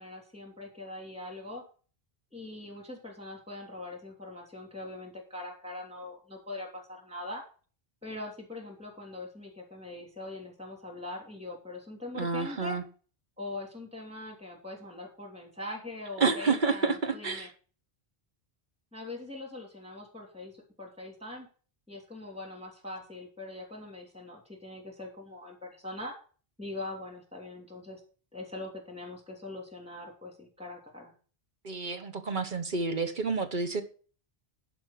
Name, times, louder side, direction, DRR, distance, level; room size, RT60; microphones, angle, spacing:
voice 1, 0.0-1.6 2.3-7.4 8.0-12.8 13.4-17.5 18.9-21.5 21.9-26.1 26.6-28.0 28.3-31.1, left 2 dB, 5° right, 1 dB, 3.1 m, -42 dB
voice 2, 12.1-12.8 16.2-17.5 31.6-33.8, right 4 dB, 50° right, 8 dB, 1.2 m, -29 dB
10.5 x 4.7 x 7.3 m, 0.39 s
omnidirectional pair, 1.0 m